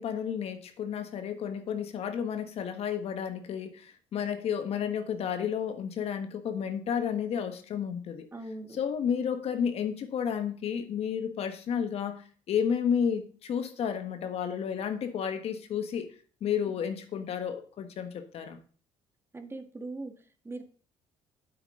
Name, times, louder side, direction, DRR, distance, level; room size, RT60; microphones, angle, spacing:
voice 1, 0.0-8.3 8.8-16.1 16.4-18.6, left 8 dB, 60° left, 1.5 m, -32 dB
voice 2, 8.3-8.8 16.7-16.8 19.3-20.6, right 2 dB, 20° right, 1.5 m, -41 dB
9.2 x 8.2 x 3.8 m
supercardioid pair, 80°, 12 cm